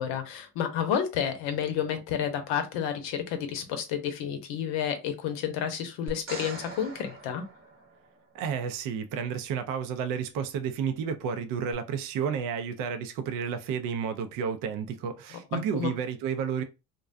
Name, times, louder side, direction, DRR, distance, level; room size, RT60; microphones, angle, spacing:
voice 1, 0.0-7.4 15.7-15.9, left 8 dB, 60° left, 0.8 m, -30 dB
sound 1, 6.1-8.4 11.7-11.8, right 2 dB, 25° right, 0.9 m, -42 dB
voice 2, 8.3-16.6, right 7 dB, 45° right, 0.5 m, -31 dB
2.4 x 2.2 x 2.4 m
hypercardioid pair, 80°, 49 cm